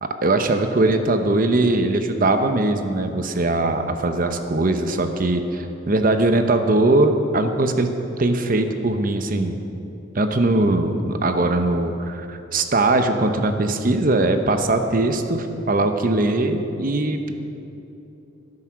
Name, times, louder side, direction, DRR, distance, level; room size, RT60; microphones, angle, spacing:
voice 1, 0.0-7.9 8.2-9.6 10.1-17.3, right 2 dB, 45° right, 7 dB, 0.8 m, -20 dB
12.5 x 9.7 x 6.2 m, 2.9 s
head